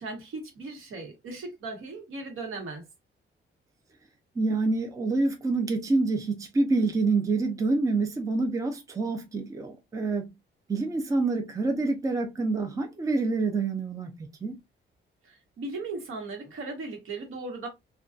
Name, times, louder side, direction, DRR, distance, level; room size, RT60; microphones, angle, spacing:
voice 1, 0.0-2.9 15.2-17.7, right 3 dB, 80° right, 1.0 m, -37 dB
voice 2, 4.4-10.3 10.7-14.1 14.4-14.6, right 3 dB, 15° right, 0.4 m, -27 dB
2.5 x 2.2 x 2.3 m
cardioid pair, 140°, 21 cm